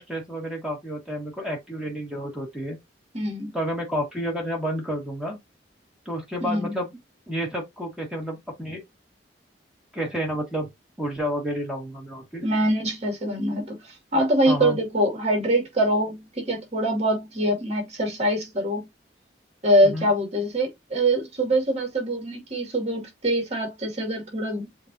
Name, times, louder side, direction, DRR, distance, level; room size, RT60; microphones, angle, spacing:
voice 1, 0.0-2.8 3.5-5.4 6.0-6.9 7.3-8.8 9.9-10.7 11.0-12.4 14.5-14.8 19.8-20.1, equal, 5° right, 1.7 m, -30 dB
voice 2, 3.1-3.5 6.4-6.7 12.4-18.9 19.6-24.7, right 1 dB, 40° right, 2.2 m, -24 dB
7.1 x 2.7 x 2.7 m
head